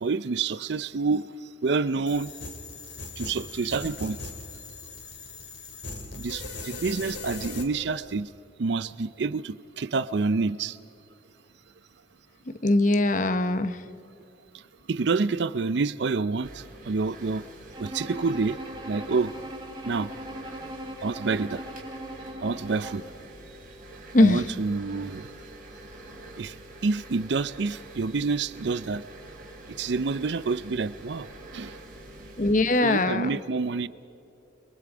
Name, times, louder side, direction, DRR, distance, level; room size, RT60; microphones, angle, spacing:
voice 1, 0.0-1.3 1.6-2.3 3.2-4.2 6.2-8.3 8.6-10.8 14.9-17.4 17.8-18.6 18.9-19.3 19.8-20.1 21.0-21.6 22.4-23.0 24.2-25.3 26.4-26.5 26.8-29.0 29.8-31.3 31.5-31.8 32.8-33.9, right 4 dB, 65° right, 16 dB, 0.5 m, -28 dB
sound 1, 2.1-7.6, left 3 dB, 70° left, 2.6 m, -39 dB
voice 2, 12.6-13.8 24.1-24.4 32.4-33.3, left 2 dB, 40° left, 11 dB, 0.9 m, -21 dB
sound 2, 16.4-32.5, right 1 dB, 45° right, 4.1 m, -46 dB
Bowed string instrument, 17.7-23.1, right 1 dB, 25° right, 1.8 m, -40 dB
29.5 x 22.5 x 5.0 m, 2.7 s
head